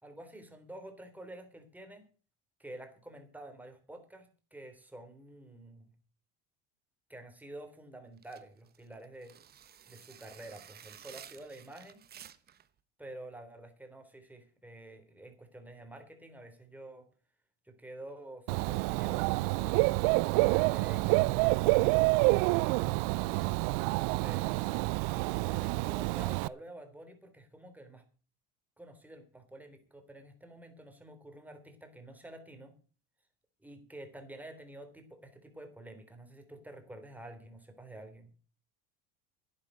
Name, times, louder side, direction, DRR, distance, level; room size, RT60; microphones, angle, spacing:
voice 1, 0.0-2.1 2.6-5.9 7.1-9.4 9.9-12.0 13.0-17.1 17.7-21.9 25.1-28.0 28.8-32.7 33.6-38.3, right 1 dB, 5° right, 6 dB, 3.6 m, -49 dB
sound 1, 8.2-12.7, right 9 dB, 30° right, 1.1 m, -53 dB
Dog / Bird, 18.5-26.5, right 24 dB, 65° right, 0.5 m, -28 dB
11.5 x 9.8 x 6.2 m, 0.38 s
supercardioid pair, 120°, 32 cm